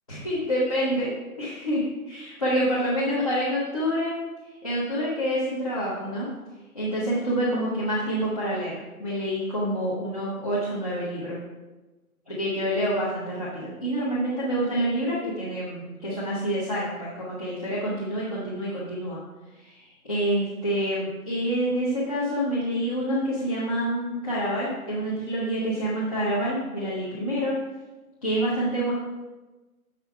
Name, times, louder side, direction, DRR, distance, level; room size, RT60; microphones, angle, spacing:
voice 1, 0.1-1.1 1.4-4.1 4.6-6.3 6.7-11.4 12.3-19.2 19.6-27.6 28.2-28.9, equal, 25° left, -9 dB, 1.0 m, -27 dB
7.2 x 5.5 x 4.4 m, 1.2 s
hypercardioid pair, 175°, 45 cm